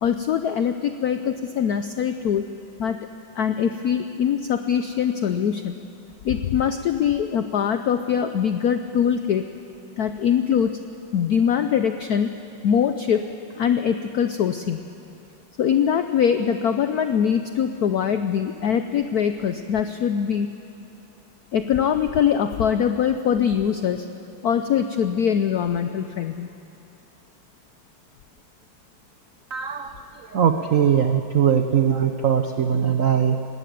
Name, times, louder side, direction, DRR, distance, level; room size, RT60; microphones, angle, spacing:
voice 1, 0.0-2.5 2.8-3.0 3.4-5.7 6.2-9.4 10.0-10.8 11.1-12.3 12.6-13.3 13.6-14.8 15.6-20.5 21.5-24.1 24.4-26.5, left 8 dB, 80° left, 9 dB, 0.8 m, -22 dB
voice 2, 29.5-29.9 30.3-33.5, right 8 dB, 85° right, 7 dB, 0.7 m, -20 dB
19.5 x 16.0 x 9.3 m, 2.7 s
omnidirectional pair, 2.4 m